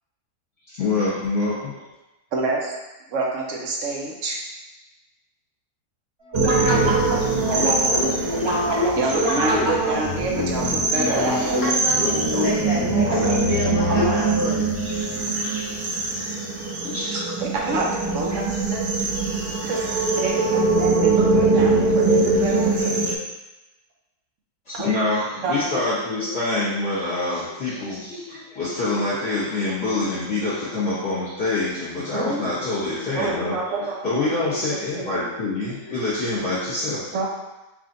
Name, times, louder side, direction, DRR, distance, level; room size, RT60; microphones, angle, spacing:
voice 1, 0.8-1.8 16.8-17.1 24.6-37.1, left 2 dB, 45° left, -12 dB, 1.4 m, -26 dB
voice 2, 2.3-2.7 3.1-4.4 9.0-11.6 17.1-18.8 19.6-19.8 20.2-22.9 24.7-24.9 25.4-25.6 32.1-32.6 33.1-34.7 34.9-35.1 37.1-37.3, right 3 dB, 60° right, -1 dB, 0.9 m, -27 dB
sound 1, 6.3-14.4, equal, 20° right, 0.8 m, -25 dB
sound 2, 6.3-23.1, right 3 dB, 80° right, 1.3 m, -23 dB
voice 3, 11.6-14.7, equal, 75° left, -6 dB, 0.5 m, -29 dB
3.5 x 2.5 x 3.9 m, 1.0 s
omnidirectional pair, 1.7 m